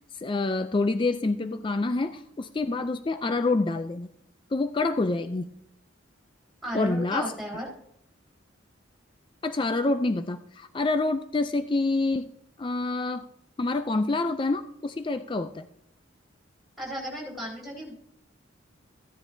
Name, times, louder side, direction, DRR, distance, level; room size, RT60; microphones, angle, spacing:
voice 1, 0.2-4.1 4.5-5.5 6.7-7.3 9.4-12.3 12.6-13.3 13.6-15.7, left 3 dB, 25° left, 10 dB, 0.4 m, -27 dB
voice 2, 6.6-7.7 16.8-17.9, equal, ahead, -3 dB, 4.5 m, -34 dB
15.5 x 10.0 x 2.7 m, 0.75 s
head